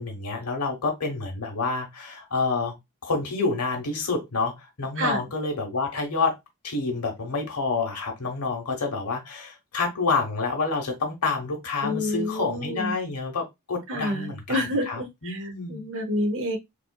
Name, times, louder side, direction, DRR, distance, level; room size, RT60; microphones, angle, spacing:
voice 1, 0.0-2.7 3.0-6.4 6.6-15.8, left 4 dB, 80° left, 1.0 m, -28 dB
voice 2, 11.8-12.9 13.9-15.4 15.7-16.6, left 1 dB, 60° right, 0.8 m, -28 dB
3.4 x 2.4 x 2.2 m
head